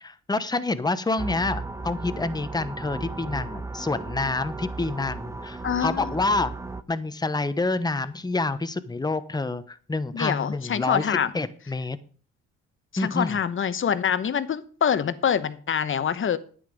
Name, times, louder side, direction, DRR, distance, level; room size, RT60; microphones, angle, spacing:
voice 1, 0.0-6.5 6.9-11.1 11.3-12.0 13.0-13.3, left 3 dB, 15° left, 13 dB, 0.9 m, -28 dB
sound 1, 1.2-6.8, right 3 dB, 10° right, 0.7 m, -35 dB
voice 2, 5.6-6.1 10.1-11.3 12.9-16.4, left 8 dB, 40° left, 14 dB, 0.9 m, -25 dB
10.5 x 8.9 x 5.2 m, 0.43 s
cardioid pair, 90°, 30 cm